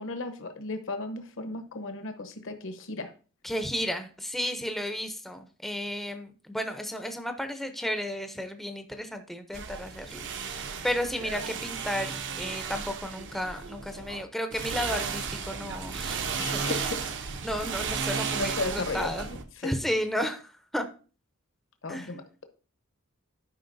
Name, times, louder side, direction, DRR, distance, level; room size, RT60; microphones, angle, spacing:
voice 1, 0.0-3.1 16.3-17.0 18.3-19.7 21.8-22.4, left 3 dB, 60° left, 7 dB, 0.9 m, -35 dB
voice 2, 3.4-17.0 17.4-19.3 19.6-20.9 21.9-22.1, equal, ahead, 6 dB, 0.5 m, -33 dB
sound 1, 9.5-14.2 14.5-19.4, right 5 dB, 55° right, 0.7 m, -34 dB
11.5 x 5.1 x 2.6 m, 0.37 s
head